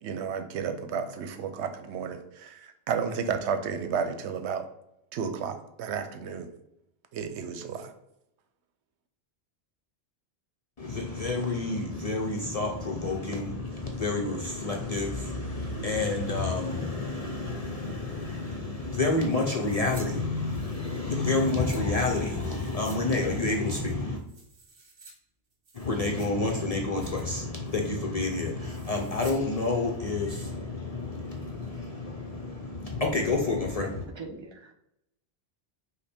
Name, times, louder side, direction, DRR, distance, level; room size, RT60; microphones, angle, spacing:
voice 1, 0.0-4.7 5.1-6.5 7.1-7.9, right 6 dB, 80° right, 8 dB, 0.9 m, -32 dB
voice 2, 10.8-24.2 25.7-34.1, left 3 dB, 50° left, 0 dB, 0.5 m, -29 dB
sound 1, 19.6-20.1 20.4-21.8 22.4-23.0 23.3-23.4 23.9-25.1 25.5-26.5 26.8-27.3 27.6-28.0 28.6-29.4 29.7-29.8, right 3 dB, 55° right, 1.2 m, -52 dB
voice 3, 34.2-34.7, right 3 dB, 35° right, 3 dB, 0.4 m, -41 dB
5.2 x 2.1 x 4.2 m, 0.82 s
omnidirectional pair, 1.1 m